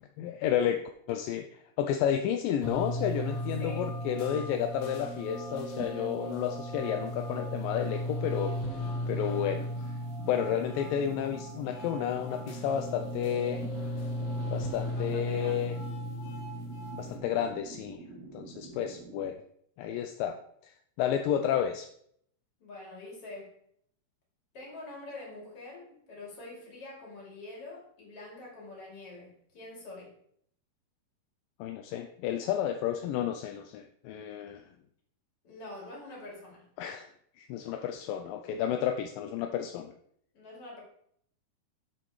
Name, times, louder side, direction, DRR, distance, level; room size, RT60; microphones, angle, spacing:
voice 1, 0.2-1.4 1.8-8.5 9.1-9.7 10.2-13.6 14.5-15.7 16.9-18.0 18.3-19.4 19.8-20.4 20.6-20.7 21.0-21.9 31.6-34.6 36.8-37.1 37.4-39.9, left 9 dB, 80° left, 6 dB, 2.0 m, -31 dB
sound 1, 2.6-17.2, equal, 55° left, 2.1 m, -36 dB
voice 2, 3.6-4.0 14.8-15.8 22.6-23.6 24.5-30.1 35.4-36.6 40.3-40.8, left 2 dB, 40° left, -3 dB, 3.4 m, -45 dB
sound 2, 8.6-19.3, right 3 dB, 75° right, 2.2 m, -48 dB
9.0 x 7.7 x 3.2 m, 0.67 s
omnidirectional pair, 4.4 m